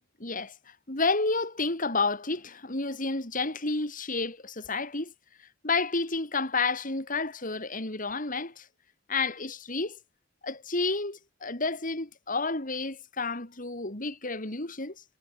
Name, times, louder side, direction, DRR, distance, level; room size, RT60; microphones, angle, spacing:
voice 1, 0.2-5.1 5.6-8.7 9.1-10.0 10.4-15.0, left 3 dB, 45° left, 4.3 m, -30 dB
head